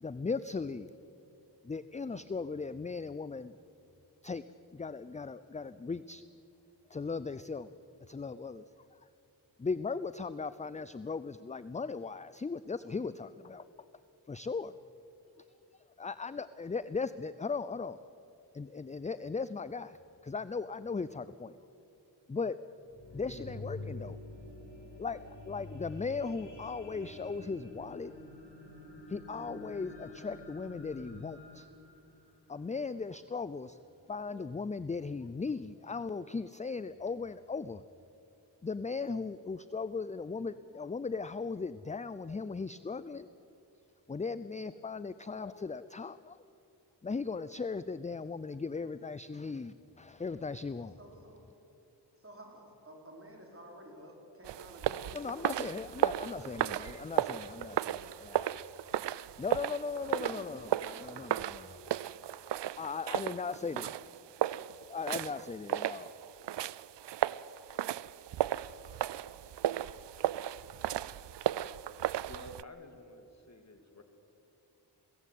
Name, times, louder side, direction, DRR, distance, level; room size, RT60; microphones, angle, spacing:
voice 1, 0.0-0.9 1.6-3.6 4.2-4.4 4.7-6.2 6.9-7.7 8.1-8.6 9.6-13.6 14.3-14.7 16.0-18.0 18.5-20.0 20.2-21.5 22.3-22.6 23.1-24.2 25.0-28.1 29.1-31.7 32.5-33.8 34.1-37.8 38.6-43.3 44.1-46.4 47.0-51.0 55.1-58.6 59.4-60.7 61.0-61.9 62.8-63.9 64.9-66.1, left 4 dB, 20° left, 15 dB, 0.4 m, -38 dB
sound 1, 22.7-33.2 33.8-33.9, left 2 dB, 90° left, 7.0 m, -48 dB
voice 2, 50.8-51.4 52.2-56.7 60.0-61.2, equal, 30° right, 0 dB, 4.9 m, -52 dB
sound 2, 54.4-72.6, right 12 dB, 75° right, 0.5 m, -35 dB
voice 3, 72.3-74.0, left 1 dB, 40° left, 5 dB, 2.2 m, -51 dB
22.0 x 17.0 x 8.4 m, 2.7 s
wide cardioid pair, 80°, 43 cm